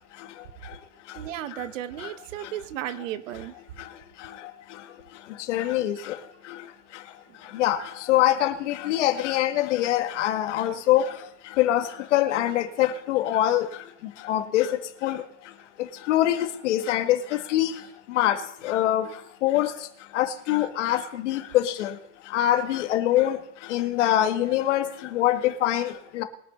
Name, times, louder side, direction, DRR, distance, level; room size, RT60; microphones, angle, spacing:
voice 1, 1.1-3.5, right 12 dB, 75° right, 1.1 m, -34 dB
voice 2, 5.5-6.2 7.5-7.8 8.1-11.1 11.6-11.8 12.1-13.7 14.3-15.2 16.1-17.7 18.2-19.1 19.4-19.7 20.1-21.9 22.3-23.4 23.7-26.2, left 13 dB, 65° left, 1.7 m, -24 dB
22.5 x 7.8 x 4.3 m
supercardioid pair, 180°, 38 cm